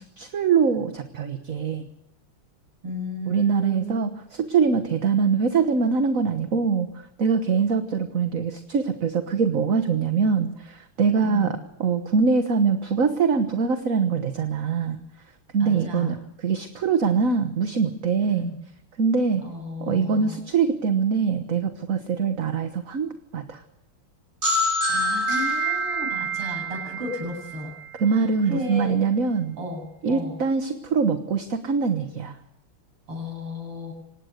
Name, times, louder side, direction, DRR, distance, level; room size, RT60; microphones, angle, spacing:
voice 1, 0.0-1.8 3.3-4.1 4.4-6.9 7.2-15.0 15.5-16.2 16.4-18.5 19.0-19.4 19.8-23.6 28.0-29.6 30.0-32.4, right 5 dB, 45° right, 8 dB, 1.4 m, -23 dB
voice 2, 2.8-4.0 11.2-11.6 15.6-16.1 18.2-18.6 19.4-20.4 24.9-27.7 28.1-29.0 29.6-30.4 33.1-33.9, left 1 dB, 90° right, 3 dB, 8.8 m, -34 dB
sound 1, 24.4-28.1, right 1 dB, 30° right, 7.6 m, -26 dB
25.5 x 19.5 x 6.6 m, 0.81 s
omnidirectional pair, 2.4 m